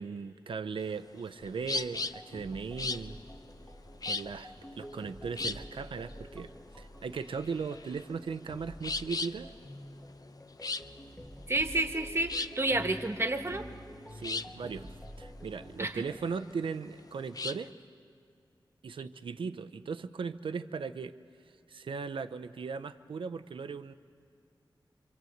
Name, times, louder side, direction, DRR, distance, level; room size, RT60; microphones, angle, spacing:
voice 1, 0.0-3.2 4.0-9.5 14.1-17.7 18.8-21.1 21.7-23.9, right 5 dB, 85° right, 10 dB, 0.6 m, -38 dB
sound 1, 0.8-17.7, left 3 dB, 45° left, 0.7 m, -39 dB
sound 2, 1.4-16.3, equal, 15° left, 1.4 m, -49 dB
voice 2, 11.5-13.6 15.8-15.9, right 2 dB, 30° right, 6 dB, 1.5 m, -30 dB
25.5 x 25.5 x 7.9 m, 2.3 s
wide cardioid pair, 90°, 9 cm